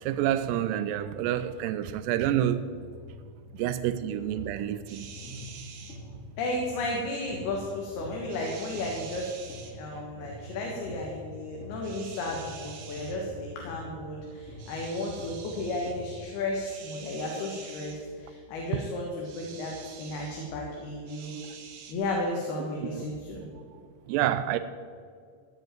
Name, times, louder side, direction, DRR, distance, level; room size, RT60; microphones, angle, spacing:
voice 1, 0.0-2.7 3.5-5.1 22.8-23.0 24.1-24.6, right 11 dB, 90° right, 1.9 m, -28 dB
sound 1, 2.2-16.2, left 2 dB, 25° left, 1.9 m, -46 dB
sound 2, 4.9-6.0 8.3-9.7 11.8-13.2 14.6-15.9 16.6-18.0 19.2-20.5 21.1-21.9, right 6 dB, 60° right, 1.9 m, -47 dB
voice 2, 6.4-9.3 9.7-21.3 21.9-23.5, left 2 dB, 80° left, 3.4 m, -33 dB
15.5 x 5.3 x 9.0 m
omnidirectional pair, 4.5 m